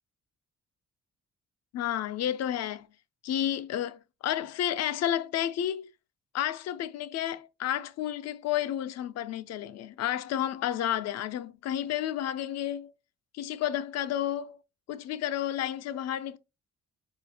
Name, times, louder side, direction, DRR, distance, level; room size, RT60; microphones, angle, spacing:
voice 1, 1.7-2.9 3.2-5.9 6.3-12.9 13.3-14.6 14.9-16.4, left 11 dB, 60° left, 0.4 m, -31 dB
4.4 x 2.5 x 2.7 m
cardioid pair, 90°, 30 cm